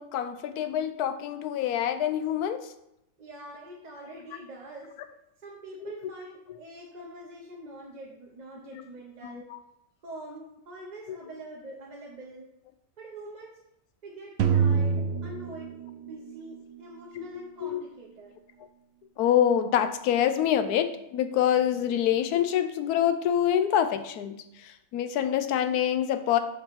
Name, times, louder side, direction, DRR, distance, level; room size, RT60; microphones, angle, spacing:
voice 1, 0.0-2.7 5.8-5.9 8.7-8.8 9.2-9.6 11.1-11.2 17.1-17.3 17.6-17.8 19.2-24.3 24.6-26.4, left 10 dB, 90° left, 9 dB, 1.1 m, -26 dB
voice 2, 3.2-5.0 5.4-9.5 10.0-12.5 13.0-13.6 14.0-15.7 16.0-18.4, right 1 dB, 40° right, -2 dB, 0.7 m, -44 dB
sound 1, 14.4-16.6, right 6 dB, 70° right, 0.6 m, -26 dB
4.9 x 4.6 x 5.7 m, 0.80 s
omnidirectional pair, 1.6 m